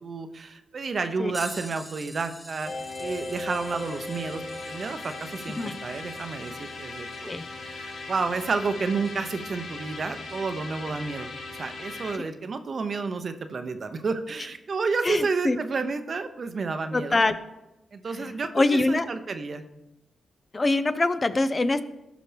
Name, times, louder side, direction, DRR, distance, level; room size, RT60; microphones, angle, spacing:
voice 1, 0.0-2.7 3.0-7.3 7.6-17.2 17.9-18.5 18.9-19.6, right 4 dB, 55° right, 9 dB, 0.7 m, -30 dB
sound 1, 1.3-9.5 10.3-10.4 12.7-12.8 13.8-14.0 15.0-15.1, equal, ahead, 1.1 m, -47 dB
sound 2, 2.6-12.2, left 2 dB, 70° left, 0.9 m, -38 dB
voice 2, 15.0-15.6 16.9-17.4 18.1-19.1 20.5-21.8, left 2 dB, 35° left, 12 dB, 0.6 m, -24 dB
14.0 x 5.1 x 3.4 m, 0.98 s
supercardioid pair, 50°, 0 cm